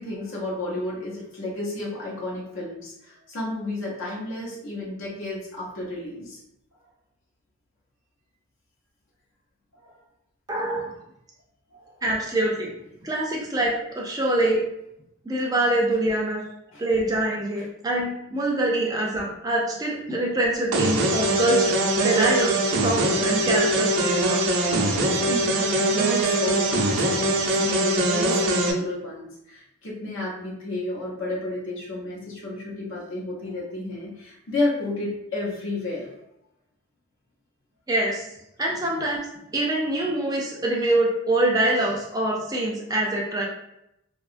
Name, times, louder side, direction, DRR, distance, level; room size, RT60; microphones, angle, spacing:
voice 1, 0.0-6.4 9.8-9.9 11.7-12.0 16.7-16.8 24.4-24.5 24.9-25.0 25.3-36.1, left 2 dB, 65° left, -5 dB, 0.7 m, -32 dB
voice 2, 10.5-10.9 12.0-12.7 13.0-14.6 15.3-16.4 16.8-24.4 37.9-38.3 38.6-39.2 39.5-43.5, right 1 dB, 15° right, -2 dB, 0.4 m, -25 dB
sound 1, 20.7-28.7, right 2 dB, 85° right, 0.5 m, -22 dB
2.7 x 2.2 x 2.5 m, 0.80 s
head